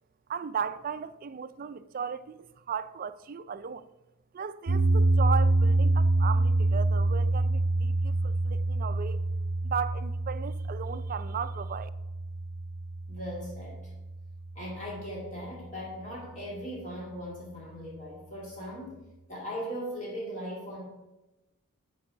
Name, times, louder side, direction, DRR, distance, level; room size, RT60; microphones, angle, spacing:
voice 1, 0.3-3.9 4.3-9.2 9.6-11.9, right 6 dB, 40° right, 0.4 m, -36 dB
sound 1, 4.7-14.9, right 2 dB, 55° right, 0.7 m, -27 dB
voice 2, 13.1-13.8 14.5-19.0 19.3-20.8, equal, 35° left, 2.3 m, -39 dB
10.5 x 4.7 x 5.7 m
head